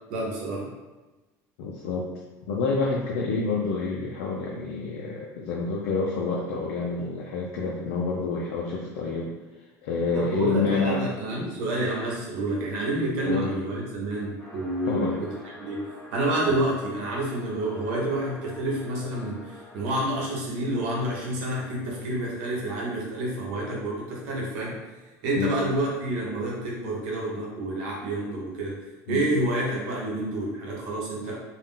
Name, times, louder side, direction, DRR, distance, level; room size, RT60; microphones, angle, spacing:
voice 1, 0.1-0.7 10.1-24.8 25.2-28.8 29.1-31.4, right 1 dB, 80° right, -3 dB, 0.9 m, -29 dB
voice 2, 1.6-2.1 2.5-9.3 9.8-11.0 13.2-13.5 14.9-15.1 25.4-25.5 29.1-29.2, left 4 dB, 80° left, -3 dB, 0.4 m, -28 dB
sound 1, 14.4-20.0, left 1 dB, 10° left, 1.0 m, -47 dB
2.3 x 2.0 x 3.6 m, 1.1 s
supercardioid pair, 110°, 9 cm